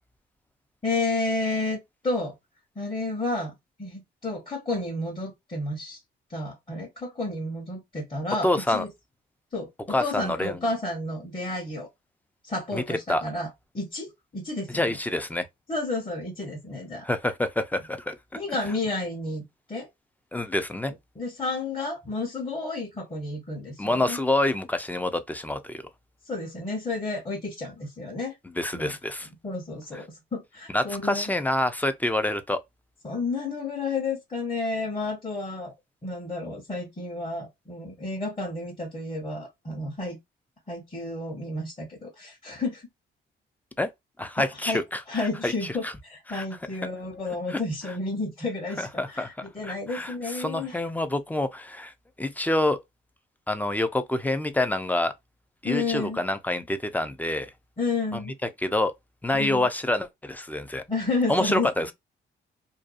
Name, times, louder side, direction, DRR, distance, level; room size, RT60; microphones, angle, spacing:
voice 1, 0.8-1.8 2.0-2.3 2.8-6.0 6.3-8.9 9.5-11.9 12.4-13.5 13.7-15.0 15.7-17.1 18.3-19.4 19.7-19.9 21.2-24.2 26.3-28.4 28.7-28.9 29.4-31.3 33.0-35.7 36.0-40.2 40.7-42.9 44.4-44.8 45.1-50.8 55.6-56.2 57.8-58.4 59.3-59.7 60.9-61.9, left 2 dB, 25° left, 1.0 m, -31 dB
voice 2, 8.4-8.8 9.9-10.6 12.7-13.2 14.7-15.5 17.0-18.2 20.3-20.9 23.8-25.8 28.6-29.3 30.7-32.6 43.8-43.9 44.2-45.9 46.3-46.5 47.5-47.6 48.8-49.3 49.6-51.9 52.2-52.8 53.5-55.1 55.6-57.5 58.6-58.9 59.2-60.8 61.3-61.9, left 1 dB, 10° left, 0.4 m, -27 dB
2.6 x 2.3 x 2.4 m
cardioid pair, 90°, 20 cm